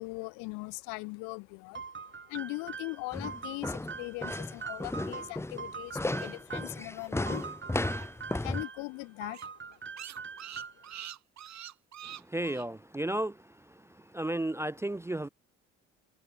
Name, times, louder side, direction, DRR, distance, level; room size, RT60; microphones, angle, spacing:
voice 1, 0.0-11.1, left 29 dB, 75° left, 3.0 m, -41 dB
sound 1, 1.7-6.8 7.3-8.9 9.2-10.9, right 5 dB, 35° right, 5.1 m, -43 dB
sound 2, 3.1-8.6, left 2 dB, 10° left, 0.9 m, -34 dB
sound 3, 5.9-8.4 8.6-8.7 9.0-9.1 9.3-12.7, right 10 dB, 55° right, 3.2 m, -46 dB
voice 2, 12.3-13.4 14.1-15.3, right 1 dB, 10° right, 0.5 m, -32 dB
hypercardioid pair, 50°, 32 cm